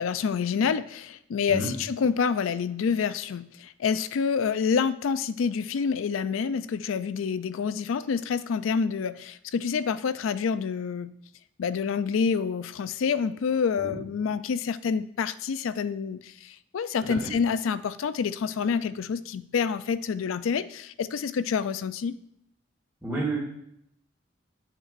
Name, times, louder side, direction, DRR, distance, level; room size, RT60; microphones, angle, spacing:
voice 1, 0.0-11.1 11.6-22.1, left 6 dB, 80° left, 14 dB, 0.4 m, -27 dB
voice 2, 23.0-23.4, right 2 dB, 5° right, -11 dB, 2.2 m, -30 dB
8.0 x 7.5 x 2.5 m, 0.75 s
head